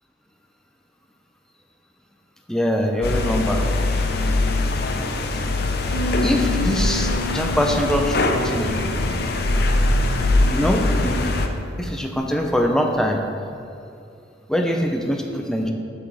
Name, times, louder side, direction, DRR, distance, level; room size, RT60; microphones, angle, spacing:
voice 1, 2.5-3.6 6.2-8.7 10.5-11.2 11.8-13.2 14.5-15.7, equal, 5° left, 2 dB, 0.5 m, -23 dB
sound 1, 3.0-11.5, left 2 dB, 60° left, 0.6 m, -22 dB
sound 2, 5.9-12.2, left 3 dB, 85° right, 1.5 m, -33 dB
8.6 x 4.8 x 5.4 m, 2.5 s
head